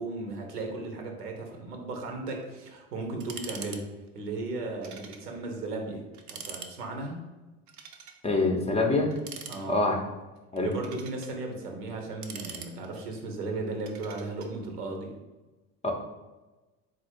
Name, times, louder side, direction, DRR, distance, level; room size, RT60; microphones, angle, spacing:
voice 1, 0.0-3.9 4.1-6.0 6.3-7.2 9.5-9.8 10.6-15.2, right 3 dB, 80° right, 2 dB, 0.9 m, -36 dB
sound 1, 3.2-4.2 4.8-5.3 5.6-5.7 6.1-6.7 7.7-8.2 9.1-10.0 10.6-11.3 12.0-13.1 13.9-14.5, right 6 dB, 40° right, 0.6 m, -43 dB
voice 2, 8.2-9.1 9.7-10.0 10.5-10.7 15.8-15.9, left 2 dB, 15° left, 1 dB, 0.6 m, -25 dB
4.0 x 2.4 x 4.4 m, 1.1 s
figure-of-eight pair, 65°, 46 cm